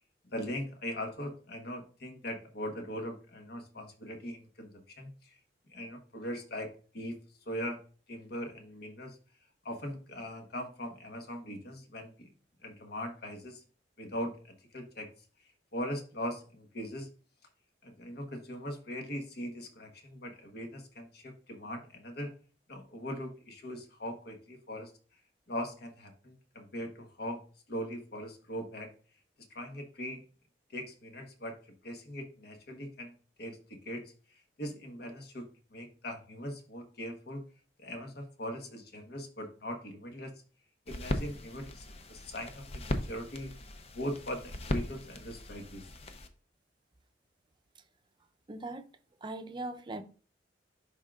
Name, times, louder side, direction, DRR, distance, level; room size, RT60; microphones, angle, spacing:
voice 1, 0.2-5.4 5.7-7.2 7.5-7.8 8.1-9.2 9.6-12.3 12.6-13.6 14.0-15.1 15.7-17.1 17.8-22.3 22.7-24.9 25.5-28.9 29.5-30.2 30.7-31.6 31.8-33.6 33.8-37.4 37.8-40.4 40.9-43.5 43.9-45.8, equal, 60° left, 1.3 m, -40 dB
sound 1, 40.9-46.3, left 1 dB, 35° left, 0.6 m, -38 dB
voice 2, 48.5-48.8 49.2-50.0, right 2 dB, 25° right, 0.6 m, -39 dB
11.0 x 3.7 x 2.4 m
head